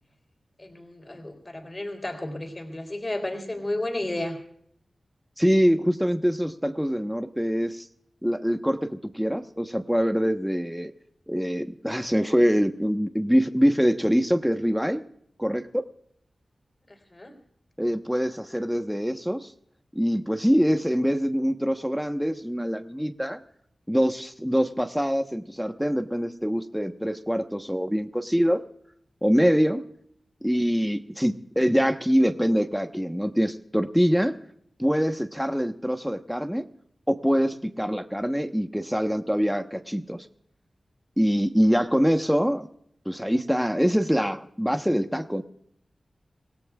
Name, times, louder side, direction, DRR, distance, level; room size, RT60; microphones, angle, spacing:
voice 1, 0.6-4.4 17.1-17.3, left 1 dB, 30° left, 3 dB, 3.8 m, -32 dB
voice 2, 5.4-7.9 8.2-10.9 11.3-15.0 15.4-15.8 17.8-19.5 19.9-23.4 23.9-28.6 29.2-29.8 30.4-34.3 34.8-36.6 37.1-40.2 41.2-42.7 43.1-45.4, equal, ahead, 7 dB, 1.0 m, -24 dB
26.0 x 17.5 x 2.4 m, 0.66 s
wide cardioid pair, 75°, 0 cm